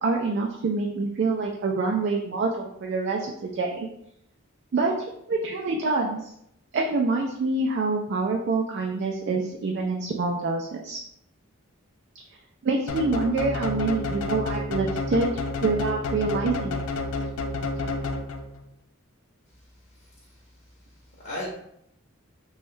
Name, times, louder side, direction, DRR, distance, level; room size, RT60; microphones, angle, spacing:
voice 1, 0.0-3.9 4.7-4.9 5.3-6.3 6.7-11.0 12.6-15.3 15.6-16.8, right 3 dB, 55° right, 0 dB, 0.3 m, -26 dB
sound 1, 12.9-18.6, left 2 dB, 75° left, 0.4 m, -30 dB
voice 2, 19.5-21.5, left 1 dB, 50° left, -5 dB, 0.7 m, -40 dB
3.0 x 2.3 x 3.1 m, 0.75 s
head